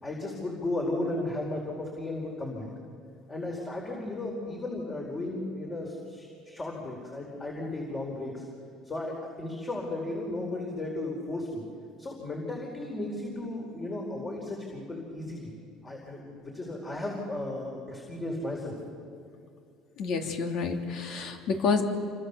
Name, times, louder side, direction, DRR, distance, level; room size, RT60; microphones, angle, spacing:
voice 1, 0.0-2.7 3.3-8.4 8.8-11.6 12.0-15.5 15.8-18.7, left 2 dB, 20° left, 0 dB, 4.7 m, -35 dB
voice 2, 20.0-21.8, left 5 dB, 60° left, 4 dB, 3.1 m, -29 dB
28.0 x 25.5 x 7.0 m, 2.4 s
cardioid pair, 125°, 0 cm